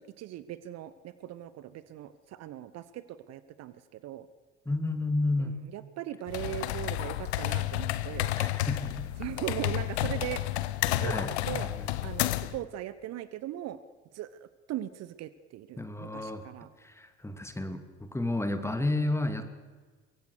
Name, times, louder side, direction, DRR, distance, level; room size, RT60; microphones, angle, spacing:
voice 1, 0.0-4.3 5.4-8.3 9.2-10.4 11.0-11.7 12.0-13.8 14.1-16.7, right 13 dB, 50° right, 15 dB, 1.1 m, -39 dB
voice 2, 4.7-5.6 8.4-9.1 11.0-11.9 15.8-16.5 16.8-19.5, left 2 dB, 10° left, 8 dB, 2.7 m, -31 dB
sound 1, 6.3-12.6, left 15 dB, 70° left, 0.9 m, -31 dB
24.0 x 22.5 x 6.6 m, 1.4 s
figure-of-eight pair, 55°, 34 cm